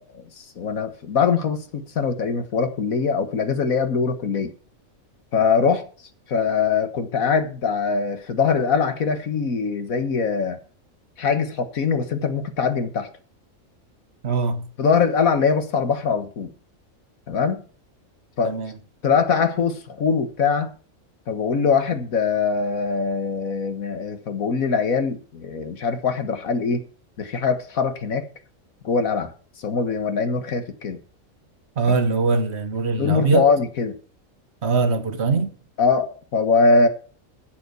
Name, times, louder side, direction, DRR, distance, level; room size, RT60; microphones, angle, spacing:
voice 1, 0.0-4.5 5.3-5.8 6.3-10.6 11.2-13.1 14.8-16.5 17.3-17.6 18.4-18.5 19.0-20.7 21.3-26.8 27.2-28.3 28.8-31.0 33.0-33.9 35.8-36.9, left 5 dB, 85° left, 1.9 m, -22 dB
voice 2, 14.2-14.7 18.4-18.7 31.8-33.5 34.6-35.5, right 4 dB, 55° right, 1.4 m, -22 dB
10.5 x 7.9 x 6.8 m
omnidirectional pair, 1.4 m